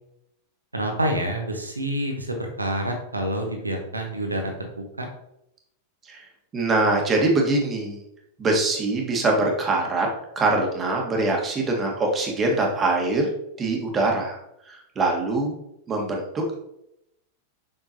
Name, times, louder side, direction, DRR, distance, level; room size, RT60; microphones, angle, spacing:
voice 1, 0.7-5.1, right 1 dB, 80° right, 3 dB, 1.4 m, -28 dB
voice 2, 6.5-8.0 8.4-10.1 10.4-13.3 13.6-15.5 15.9-16.6, right 2 dB, 20° right, 1 dB, 1.7 m, -23 dB
7.2 x 6.4 x 2.9 m, 0.81 s
figure-of-eight pair, 90°, 0 cm